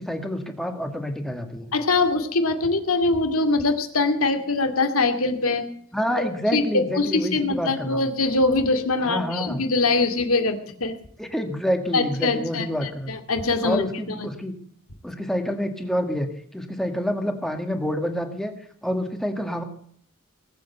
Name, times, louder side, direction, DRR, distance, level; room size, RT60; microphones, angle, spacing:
voice 1, 0.0-1.7 5.9-8.1 9.0-9.6 11.2-13.1 13.6-14.6 15.0-18.5 18.8-19.6, equal, ahead, 5 dB, 1.7 m, -28 dB
voice 2, 1.7-5.7 6.2-11.0 11.9-13.8, left 3 dB, 75° left, 7 dB, 2.3 m, -23 dB
19.5 x 8.0 x 8.0 m, 0.63 s
head